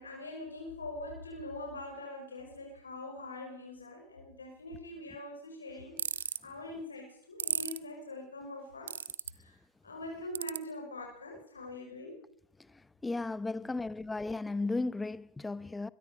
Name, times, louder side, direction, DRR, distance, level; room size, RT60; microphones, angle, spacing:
voice 1, 0.0-9.0 9.3-9.6 9.8-12.2, left 1 dB, 85° left, 5.5 m, -43 dB
sound 1, 6.0-6.4 7.4-7.8 8.9-9.3 10.3-10.6, right 8 dB, 75° right, 0.8 m, -33 dB
voice 2, 13.0-15.9, left 3 dB, 10° left, 0.8 m, -35 dB
23.0 x 22.0 x 5.2 m
figure-of-eight pair, 95°, 0 cm